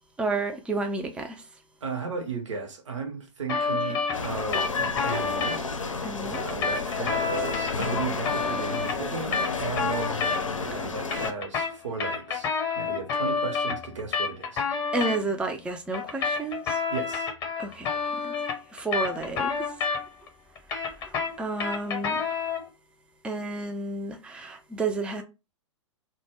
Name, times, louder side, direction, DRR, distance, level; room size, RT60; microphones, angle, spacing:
voice 1, 0.2-1.4 3.6-3.9 6.0-6.5 14.9-16.8 17.6-18.3 18.7-19.6 21.0-22.2 23.2-25.2, right 3 dB, 5° right, 0.3 m, -31 dB
voice 2, 1.8-5.6 6.2-10.1 10.6-14.6 16.9-17.3, right 5 dB, 70° right, 0.7 m, -35 dB
sound 1, 3.5-5.6 6.3-10.7 11.0-15.2 15.9-20.3 20.6-22.7, left 5 dB, 25° left, 0.7 m, -29 dB
sound 2, 4.1-11.3, left 4 dB, 85° left, 0.5 m, -31 dB
2.1 x 2.0 x 3.3 m
figure-of-eight pair, 110°, 16 cm